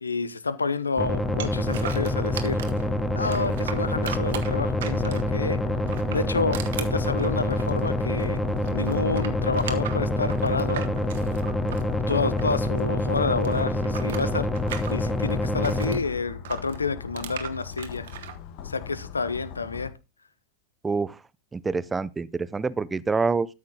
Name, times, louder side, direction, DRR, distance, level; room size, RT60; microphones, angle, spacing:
voice 1, 0.0-2.6 3.1-5.6 6.1-8.4 8.7-10.9 12.1-14.5 14.9-18.1 18.6-19.9, left 4 dB, 75° left, 0.8 m, -29 dB
sound 1, 1.0-16.0, left 1 dB, 5° left, 1.2 m, -26 dB
sound 2, 1.4-2.8 3.2-5.4 5.8-8.4 8.6-12.8 13.1-16.0 16.4-18.3, right 9 dB, 60° right, 1.5 m, -38 dB
sound 3, 4.0-19.9, left 8 dB, 45° left, 1.3 m, -41 dB
voice 2, 20.8-21.2 21.5-23.5, right 4 dB, 15° right, 0.6 m, -26 dB
13.0 x 6.6 x 3.7 m
figure-of-eight pair, 90°, 0 cm